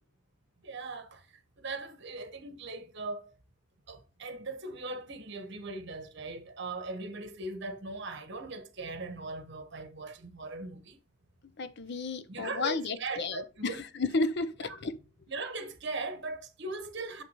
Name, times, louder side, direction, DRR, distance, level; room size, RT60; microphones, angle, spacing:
voice 1, 0.6-3.3 3.9-11.0 12.3-13.8 14.6-14.8 15.3-17.2, right 3 dB, 55° right, 1.1 m, -39 dB
voice 2, 11.6-14.9, left 3 dB, 50° left, 0.6 m, -32 dB
6.7 x 5.9 x 3.0 m
head